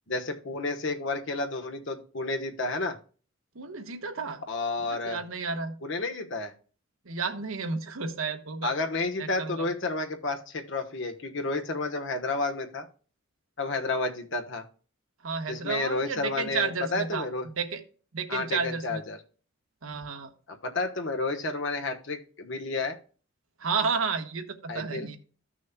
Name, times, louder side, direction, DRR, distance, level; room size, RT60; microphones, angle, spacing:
voice 1, 0.1-3.0 4.5-5.2 5.8-6.5 8.6-12.9 13.6-14.6 15.5-17.4 18.3-19.2 20.5-23.0 24.7-25.1, left 3 dB, 60° left, 5 dB, 1.2 m, -31 dB
voice 2, 3.5-4.4 4.8-5.7 7.0-8.7 9.2-9.7 15.2-17.8 18.1-19.0 19.8-20.3 23.6-25.2, right 5 dB, 80° right, 5 dB, 1.2 m, -32 dB
15.5 x 6.2 x 2.2 m, 0.39 s
head